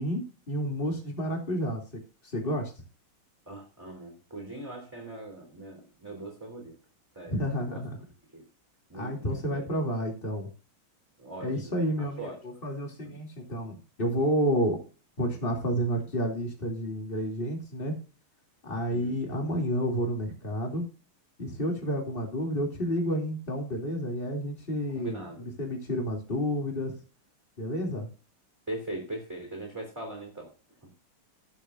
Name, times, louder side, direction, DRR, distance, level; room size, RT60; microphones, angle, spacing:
voice 1, 0.0-2.7 7.3-8.0 8.9-10.5 11.4-14.8 15.2-17.9 18.6-20.8 21.4-27.0 27.6-28.1, equal, 25° left, 1 dB, 2.9 m, -30 dB
voice 2, 3.5-6.7 7.1-7.8 8.3-8.4 8.9-9.7 11.2-12.6 13.0-13.1 18.9-19.2 24.9-25.5 28.7-30.5 30.8-31.1, right 2 dB, 10° right, 1 dB, 3.3 m, -41 dB
17.5 x 7.1 x 2.5 m, 0.35 s
omnidirectional pair, 2.4 m